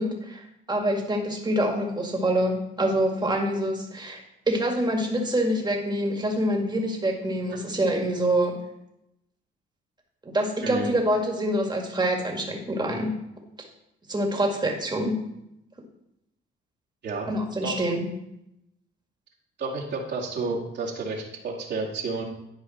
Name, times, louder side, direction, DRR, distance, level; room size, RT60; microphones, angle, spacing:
voice 1, 0.0-4.2 4.5-8.6 10.2-13.1 14.1-15.2 17.3-18.0, right 1 dB, 20° right, 1 dB, 2.0 m, -26 dB
voice 2, 19.6-22.2, right 3 dB, 65° right, -3 dB, 2.0 m, -31 dB
11.5 x 4.8 x 4.3 m, 0.84 s
cardioid pair, 90°, 20 cm